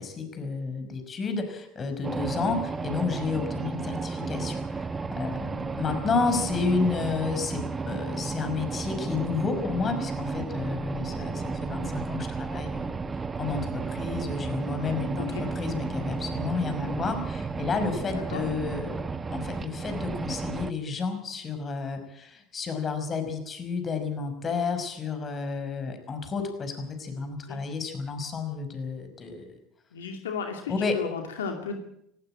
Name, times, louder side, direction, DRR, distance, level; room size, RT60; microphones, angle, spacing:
voice 1, 0.0-13.0 13.4-19.0 19.3-29.6 30.7-31.0, left 4 dB, 35° left, 8 dB, 5.6 m, -31 dB
sound 1, 2.0-20.7, right 4 dB, 25° right, 1.4 m, -33 dB
voice 2, 18.1-18.4 27.4-27.6 29.9-31.8, left 6 dB, 85° left, 4 dB, 2.6 m, -35 dB
18.5 x 16.0 x 8.9 m, 0.76 s
hypercardioid pair, 80°, 0 cm